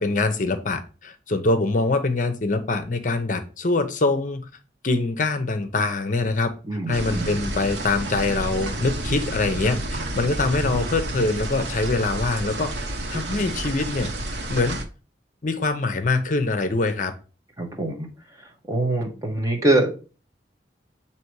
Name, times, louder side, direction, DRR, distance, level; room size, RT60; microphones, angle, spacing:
voice 1, 0.0-4.5 4.8-6.5 6.9-12.7 13.1-14.8 15.4-17.1, left 3 dB, 45° left, 9 dB, 0.7 m, -24 dB
voice 2, 6.7-7.3 17.6-18.1 18.7-19.9, right 2 dB, 20° right, 1 dB, 1.2 m, -23 dB
sound 1, 6.9-14.8, right 1 dB, 70° right, 1.0 m, -30 dB
7.7 x 2.9 x 4.7 m, 0.35 s
head